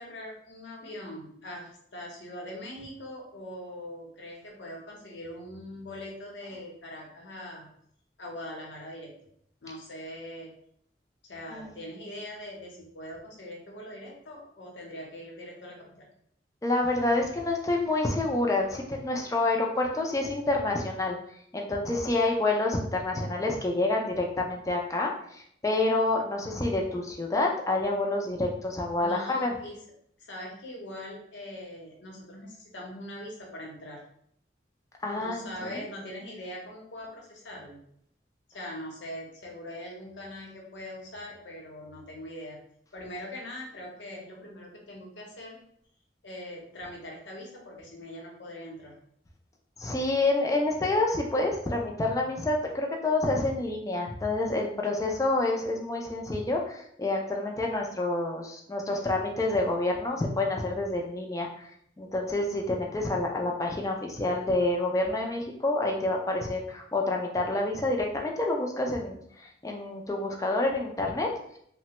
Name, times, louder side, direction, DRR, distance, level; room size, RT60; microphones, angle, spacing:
voice 1, 0.0-7.7 8.2-9.1 9.6-10.5 11.3-16.1 29.0-29.8 30.2-34.0 35.2-37.8 38.5-42.6 42.9-45.6 46.2-48.9, left 1 dB, 85° left, -2 dB, 0.8 m, -42 dB
voice 2, 16.6-21.2 21.5-29.5 35.0-35.5 35.8-35.9 49.8-61.7 62.0-71.6, left 2 dB, 20° left, 1 dB, 0.3 m, -28 dB
3.2 x 2.1 x 2.9 m, 0.69 s
head